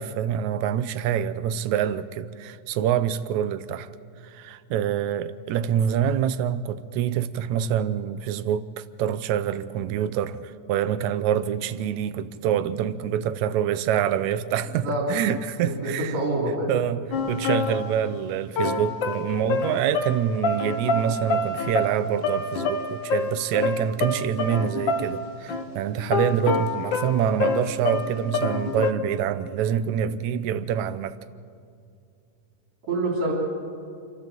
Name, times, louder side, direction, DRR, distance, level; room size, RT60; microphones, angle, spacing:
voice 1, 0.0-3.9 4.2-16.1 16.7-31.2, right 9 dB, 90° right, 2.1 m, -26 dB
voice 2, 14.6-15.0 15.6-16.8 32.9-33.3, right 2 dB, 65° right, 4.9 m, -27 dB
sound 1, 17.1-18.2 18.6-25.7 26.0-28.9, left 3 dB, 55° left, 1.4 m, -27 dB
27.5 x 13.5 x 7.6 m
omnidirectional pair, 3.3 m